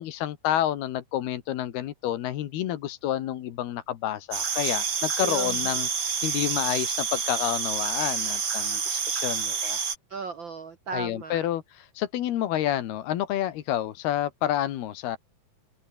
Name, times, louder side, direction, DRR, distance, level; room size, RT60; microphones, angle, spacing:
voice 1, 0.0-9.8 10.9-15.2, left 12 dB, 80° left, 3.5 m, -29 dB
sound 1, 4.3-10.0, right 6 dB, 40° right, 3.1 m, -28 dB
voice 2, 5.2-5.8 10.1-11.5, right 5 dB, 85° right, 1.0 m, -35 dB
open air
omnidirectional pair, 4.5 m